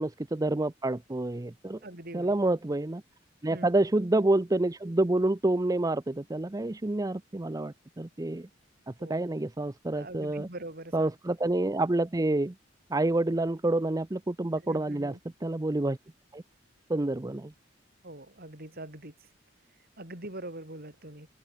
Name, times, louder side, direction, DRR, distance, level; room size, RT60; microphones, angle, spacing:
voice 1, 0.0-1.8 2.1-3.0 3.4-8.5 9.1-10.5 10.9-12.5 12.9-15.2 15.4-16.0 16.3-16.4 16.9-17.5, right 2 dB, 20° right, 0.6 m, -28 dB
voice 2, 1.8-2.3 3.5-3.7 9.0-9.3 9.9-11.1 14.6-15.2 18.0-19.1 20.0-21.3, right 1 dB, 55° right, 6.2 m, -43 dB
head